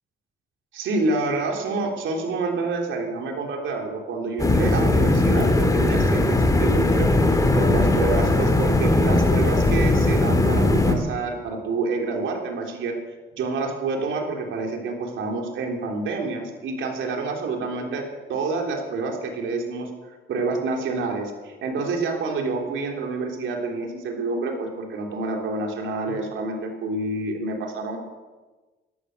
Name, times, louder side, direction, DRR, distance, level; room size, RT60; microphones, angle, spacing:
voice 1, 0.7-13.0 13.4-19.9 20.3-28.0, right 3 dB, 75° right, 2 dB, 3.6 m, -28 dB
sound 1, 4.4-10.9, left 2 dB, 15° left, 2.7 m, -19 dB
16.5 x 13.0 x 6.8 m, 1.3 s
cardioid pair, 90°, 20 cm